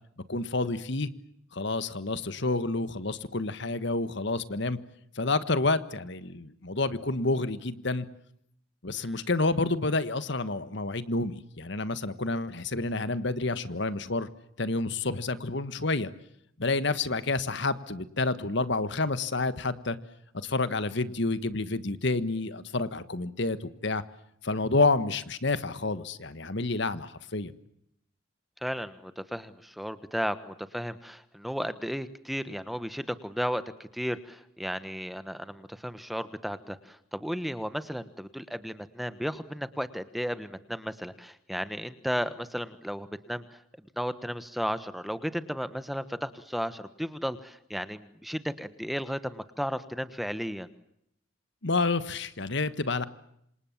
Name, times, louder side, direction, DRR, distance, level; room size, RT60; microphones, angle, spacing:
voice 1, 0.3-1.1 1.5-4.8 5.1-8.1 8.8-14.3 14.6-16.1 16.6-20.0 20.3-24.0 24.4-27.6 51.6-53.1, left 3 dB, 60° left, 13 dB, 1.5 m, -29 dB
voice 2, 28.6-33.6 33.9-43.4 44.0-50.7, equal, ahead, 12 dB, 1.2 m, -34 dB
27.5 x 27.0 x 7.4 m, 0.76 s
head